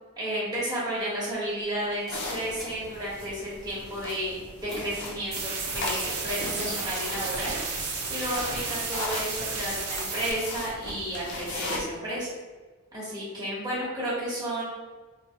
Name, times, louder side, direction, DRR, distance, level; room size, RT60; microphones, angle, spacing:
voice 1, 0.2-12.3 12.9-14.6, right 1 dB, 20° right, -8 dB, 1.3 m, -32 dB
sound 1, 1.0-7.4, equal, ahead, 0.7 m, -48 dB
sound 2, 2.1-11.8, left 2 dB, 50° left, 0.6 m, -38 dB
sound 3, 5.3-10.3, right 4 dB, 90° right, 0.7 m, -32 dB
4.3 x 2.3 x 3.0 m, 1.4 s
head